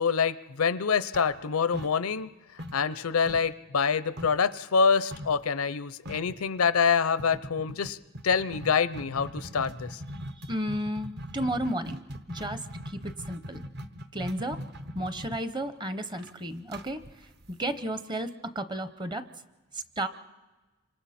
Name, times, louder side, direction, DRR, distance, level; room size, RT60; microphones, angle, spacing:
voice 1, 0.0-2.3 2.7-8.0 8.2-10.0, left 6 dB, 90° left, 15 dB, 0.6 m, -26 dB
sound 1, 1.1-2.3 2.6-4.5 5.1-5.4 5.7-5.8 6.0-6.4 7.2-18.0, equal, 50° right, 1.0 m, -41 dB
voice 2, 10.2-13.6 14.1-14.6 14.9-17.0 17.5-19.2 19.7-20.1, right 1 dB, 20° right, 11 dB, 0.8 m, -33 dB
28.0 x 25.5 x 4.3 m, 1.2 s
head